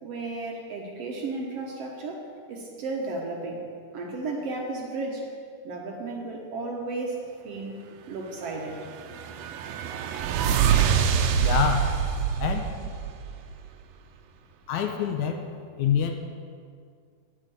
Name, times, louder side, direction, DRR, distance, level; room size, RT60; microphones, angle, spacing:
voice 1, 0.0-3.6 3.9-5.3 5.6-8.9, right 3 dB, 60° right, 0 dB, 1.9 m, -34 dB
sound 1, 8.7-13.6, right 8 dB, 85° right, 1.4 m, -25 dB
voice 2, 11.3-11.9 12.4-12.7 14.7-15.4 15.8-16.1, left 8 dB, 75° left, 4 dB, 2.0 m, -26 dB
14.0 x 5.0 x 9.3 m, 2.2 s
omnidirectional pair, 3.7 m